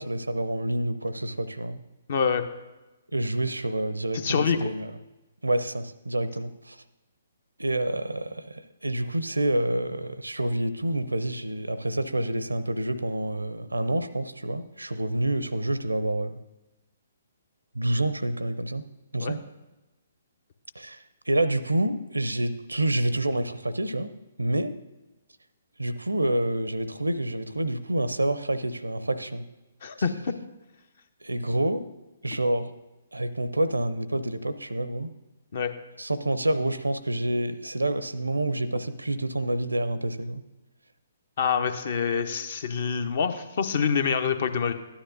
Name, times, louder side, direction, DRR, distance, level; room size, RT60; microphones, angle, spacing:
voice 1, 0.0-1.8 3.1-4.9 5.4-6.8 7.6-16.4 17.7-18.8 19.1-19.4 20.8-21.0 21.3-24.1 24.4-24.7 25.8-29.4 31.2-31.9 32.2-32.7 33.1-35.1 36.0-40.4, right 1 dB, 80° right, 14 dB, 0.6 m, -28 dB
voice 2, 2.1-2.4 4.1-4.7 19.2-19.3 29.8-30.3 35.5-35.7 41.4-44.7, left 6 dB, 50° left, 10 dB, 0.7 m, -26 dB
13.0 x 9.9 x 2.6 m, 1.0 s
figure-of-eight pair, 130°, 0 cm